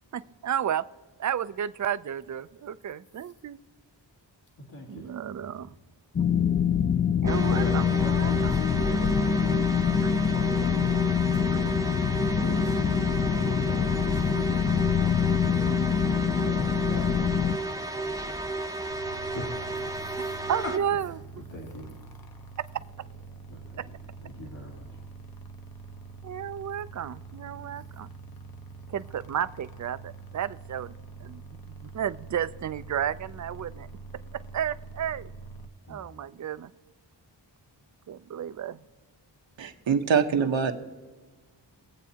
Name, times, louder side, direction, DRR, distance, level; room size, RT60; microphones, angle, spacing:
voice 1, 0.1-0.8 1.2-3.6 4.9-5.7 7.2-8.6 10.0-10.1 20.1-20.2 20.5-21.2 22.6-22.7 23.8-23.9 26.2-28.1 28.9-30.9 31.2-31.4 31.8-33.9 34.3-35.3 35.9-36.7 38.1-38.8, right 9 dB, 40° right, 15 dB, 0.4 m, -32 dB
voice 2, 4.6-5.7 7.5-9.7 10.2-10.9 11.3-11.7 12.2-14.6 14.9-18.4 18.9-20.2 20.6-20.7 21.5-21.9 23.5-23.8 24.2-25.0 35.9-36.0, left 1 dB, 80° left, -6 dB, 2.6 m, -41 dB
sound 1, 6.1-17.6, left 7 dB, 30° left, 0.4 m, -25 dB
sound 2, 7.3-20.8, right 2 dB, 10° right, 0.7 m, -33 dB
sound 3, 18.9-35.7, right 4 dB, 50° left, 1.0 m, -45 dB
voice 3, 39.6-40.7, right 6 dB, 80° right, 6 dB, 1.1 m, -24 dB
21.0 x 8.3 x 2.8 m, 1.3 s
wide cardioid pair, 85°, 45 cm